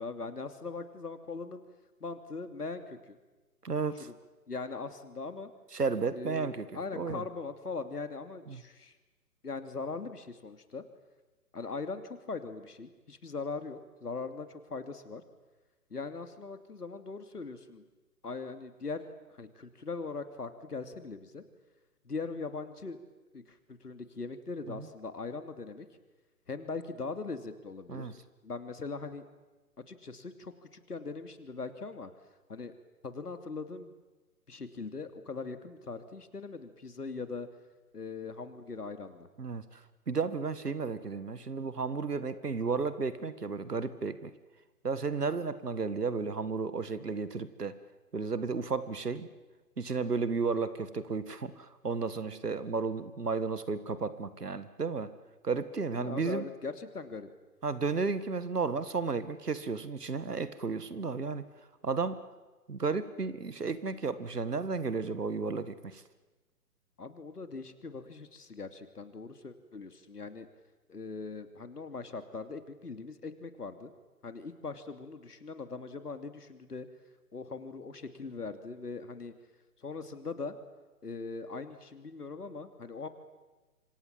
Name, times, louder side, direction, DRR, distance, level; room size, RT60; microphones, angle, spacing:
voice 1, 0.0-1.6 2.0-3.2 4.5-5.5 6.1-8.9 9.4-10.8 11.5-15.2 15.9-17.8 18.2-19.1 19.4-21.4 22.0-23.0 23.3-25.9 26.5-28.1 28.4-29.2 29.9-32.1 32.5-32.7 33.0-33.9 34.5-37.5 37.9-39.3 55.9-57.3 67.0-70.5 70.9-73.9 74.2-76.9 77.3-79.3 79.8-80.5 81.0-83.1, left 4 dB, 75° left, 9 dB, 2.9 m, -40 dB
voice 2, 3.6-4.1 5.7-6.7 6.9-7.2 8.5-8.6 24.7-24.9 27.9-28.2 39.4-39.8 40.1-44.3 44.8-47.8 48.1-49.3 49.8-55.1 55.4-56.4 57.6-61.5 61.8-62.2 62.7-66.0, right 4 dB, 80° right, 14 dB, 2.0 m, -33 dB
27.5 x 25.5 x 7.6 m, 1.2 s
figure-of-eight pair, 135°, 47 cm